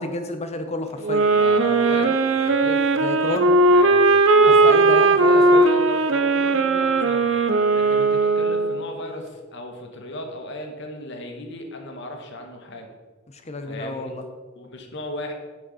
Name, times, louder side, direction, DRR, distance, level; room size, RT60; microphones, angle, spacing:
voice 1, 0.0-1.3 3.0-3.6 4.5-5.7 13.3-14.2, left 2 dB, 30° left, 7 dB, 0.7 m, -30 dB
sound 1, 1.0-8.9, right 3 dB, 65° right, 0.6 m, -18 dB
voice 2, 1.3-2.9 3.7-4.1 4.3-4.8 5.1-7.4 7.7-12.9 13.7-14.1 14.6-15.3, left 1 dB, 60° left, 3 dB, 1.2 m, -35 dB
8.8 x 6.3 x 4.1 m, 1.4 s
head